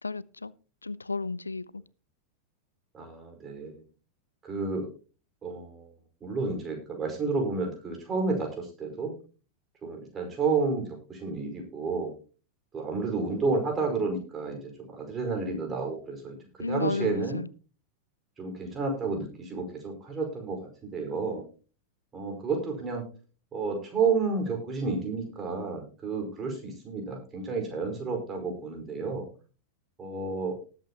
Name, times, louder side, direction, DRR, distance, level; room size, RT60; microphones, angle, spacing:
voice 1, 0.0-0.5 0.8-1.8 16.6-17.5, left 3 dB, 80° left, 22 dB, 0.4 m, -33 dB
voice 2, 2.9-3.8 4.4-4.9 5.4-5.9 6.2-9.1 9.8-12.1 12.7-16.4 16.7-17.4 18.4-21.4 22.1-23.0 23.5-29.3 30.0-30.6, right 4 dB, 20° right, 2 dB, 4.9 m, -31 dB
19.5 x 8.3 x 2.9 m, 0.36 s
figure-of-eight pair, 90°, 0 cm